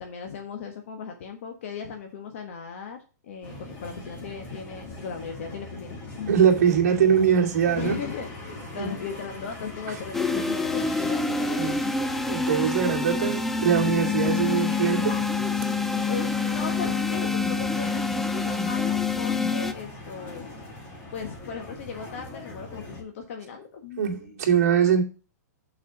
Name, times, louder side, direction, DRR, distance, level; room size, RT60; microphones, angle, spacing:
voice 1, 0.0-3.0 3.2-3.5 3.8-6.4 7.8-12.1 16.1-20.4 21.1-24.4, left 6 dB, 50° left, 1.3 m, -37 dB
sound 1, 3.4-23.0, left 2 dB, 20° left, 2.1 m, -41 dB
voice 2, 6.3-8.0 8.7-8.9 11.6-11.8 12.2-15.2 24.0-25.0, right 8 dB, 55° right, 2.4 m, -22 dB
sound 2, 10.1-19.7, left 4 dB, 5° left, 0.3 m, -26 dB
6.8 x 4.8 x 5.8 m
hypercardioid pair, 165°, 9 cm